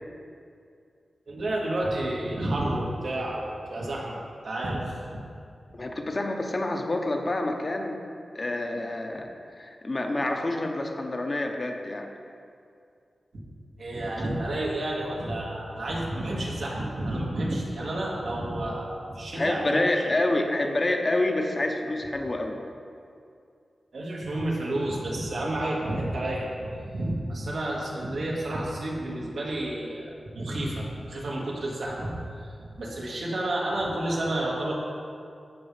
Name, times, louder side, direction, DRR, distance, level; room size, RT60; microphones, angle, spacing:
voice 1, 1.3-5.2 13.3-13.4 13.8-19.8 23.9-32.1 32.6-34.7, right 1 dB, 85° right, -4 dB, 1.8 m, -30 dB
voice 2, 5.7-8.0 8.3-9.3 9.6-12.1 19.3-22.6, left 2 dB, 35° left, 3 dB, 0.8 m, -27 dB
15.5 x 5.3 x 3.3 m, 2.4 s
wide cardioid pair, 100°, 0 cm